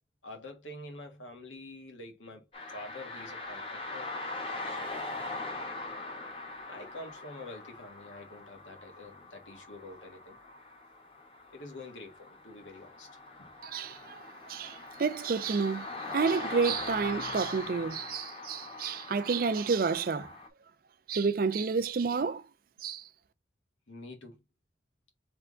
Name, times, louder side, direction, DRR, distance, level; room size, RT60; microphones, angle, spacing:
voice 1, 0.2-2.4 2.7-4.1 4.6-5.1 6.7-10.4 11.5-13.1 13.4-13.5 20.2-20.3 23.9-24.4, left 2 dB, 90° left, 1.5 m, -46 dB
sound 1, 2.5-20.5, left 2 dB, 30° left, 1.1 m, -41 dB
voice 2, 13.6-14.2 14.5-20.3 21.1-22.4 22.8-23.1, right 5 dB, 50° right, 0.4 m, -30 dB
3.5 x 3.5 x 3.7 m
head